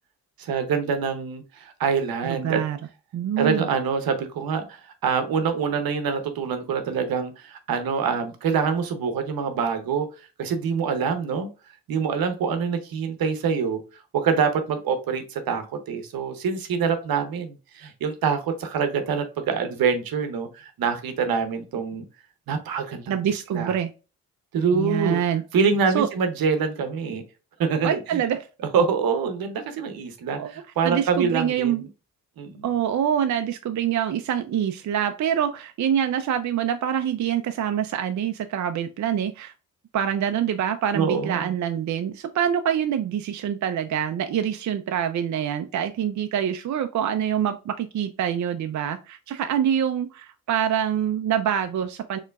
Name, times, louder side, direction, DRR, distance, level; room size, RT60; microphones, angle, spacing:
voice 1, 0.4-2.6 3.4-10.1 10.4-11.5 11.9-13.8 14.1-22.0 22.5-23.1 23.5-23.7 24.5-25.2 25.5-27.2 27.6-28.2 28.7-31.8 32.4-32.6 40.9-41.5, right 6 dB, 75° right, 8 dB, 0.9 m, -25 dB
voice 2, 2.2-2.8 3.1-3.7 23.1-23.9 24.7-25.4 25.9-26.1 27.8-28.5 30.4-30.5 30.8-31.9 32.6-39.5 39.9-52.2, right 9 dB, 55° right, 8 dB, 0.5 m, -25 dB
4.4 x 3.0 x 2.4 m, 0.32 s
supercardioid pair, 55°, 36 cm